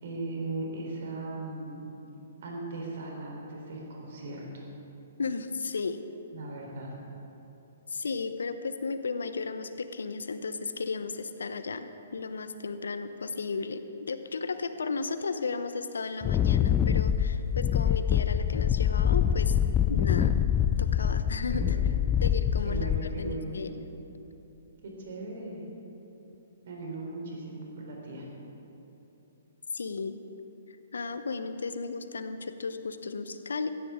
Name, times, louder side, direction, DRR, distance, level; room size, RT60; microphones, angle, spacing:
voice 1, 0.0-1.8 2.4-4.4 6.3-6.9 21.5-22.0 22.6-23.6 24.8-25.6 26.6-28.3, right 2 dB, 55° right, -1 dB, 3.7 m, -38 dB
voice 2, 5.2-6.0 7.9-19.6 19.9-20.3 20.8-21.8 22.2-23.8 29.7-30.2 30.7-33.7, left 4 dB, 70° left, 10 dB, 0.8 m, -34 dB
Wind, 16.2-23.4, left 9 dB, 20° left, 0.4 m, -25 dB
17.0 x 14.5 x 3.7 m, 3.0 s
figure-of-eight pair, 120°, 0 cm